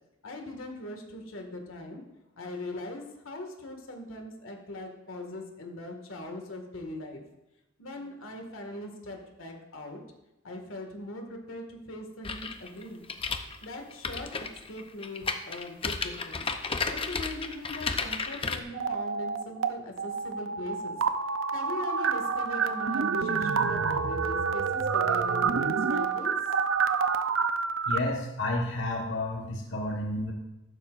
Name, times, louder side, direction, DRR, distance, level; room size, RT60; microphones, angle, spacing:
voice 1, 0.2-2.0 2.4-7.2 7.8-10.0 10.4-13.1 13.6-21.0 21.5-26.3, left 1 dB, 85° left, 3 dB, 2.0 m, -40 dB
sound 1, 12.2-18.6, left 4 dB, 25° left, 0.7 m, -33 dB
sound 2, 18.7-19.7 20.0-28.0, right 5 dB, 80° right, 0.7 m, -28 dB
voice 2, 27.9-30.3, left 1 dB, 65° left, -1 dB, 1.5 m, -31 dB
14.0 x 12.0 x 2.6 m, 0.95 s
head